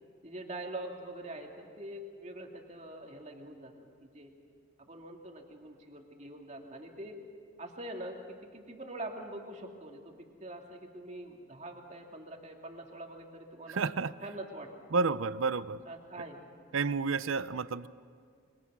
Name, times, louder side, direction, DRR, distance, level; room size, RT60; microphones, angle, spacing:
voice 1, 0.2-3.7 4.0-4.3 4.8-7.2 7.6-10.1 10.4-13.8 14.2-14.7 15.9-16.5, right 1 dB, 35° right, 2 dB, 2.4 m, -44 dB
voice 2, 13.7-14.1 14.9-15.8 16.7-17.9, right 4 dB, 75° right, 16 dB, 0.6 m, -30 dB
28.0 x 24.0 x 6.2 m, 2.1 s
head